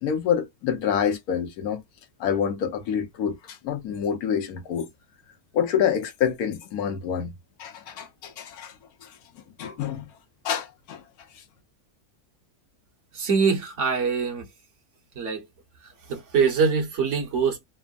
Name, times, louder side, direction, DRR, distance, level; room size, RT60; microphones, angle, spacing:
voice 1, 0.0-1.8 2.2-4.9 5.5-7.3 7.6-8.8 9.0-9.2 9.6-10.1 10.4-11.0 11.3-11.4, left 8 dB, 70° left, 1.2 m, -27 dB
voice 2, 13.1-14.4 15.2-15.4 16.1-17.6, right 5 dB, 55° right, 1.2 m, -23 dB
3.4 x 2.1 x 2.3 m
omnidirectional pair, 1.7 m